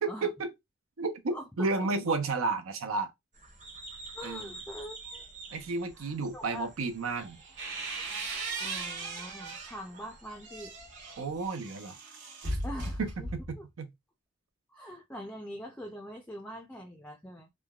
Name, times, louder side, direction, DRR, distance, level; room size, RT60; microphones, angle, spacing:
voice 1, 0.0-0.5 1.0-3.1 4.2-4.5 5.5-7.4 11.2-12.0 13.0-13.1 13.5-13.9, right 3 dB, 90° right, 0.6 m, -32 dB
sound 1, 3.3-11.5, right 2 dB, 40° right, 0.8 m, -50 dB
voice 2, 4.1-5.2 5.9-6.7 8.6-10.8 12.6-13.3 13.6-13.7 14.7-17.5, equal, 5° left, 0.3 m, -43 dB
sound 2, 7.2-9.8 10.3-13.6, right 2 dB, 60° right, 1.2 m, -38 dB
3.2 x 2.1 x 2.3 m
head